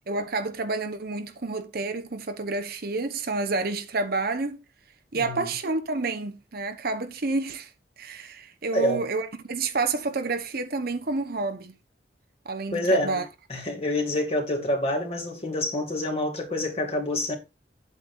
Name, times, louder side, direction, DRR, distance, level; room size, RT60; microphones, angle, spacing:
voice 1, 0.1-4.6 5.1-7.7 8.0-11.7 12.4-13.3, right 3 dB, 55° right, 1.0 m, -29 dB
voice 2, 5.1-5.5 8.7-9.0 12.7-13.2 13.5-17.3, left 1 dB, 35° left, 2.3 m, -27 dB
8.5 x 8.3 x 2.6 m
head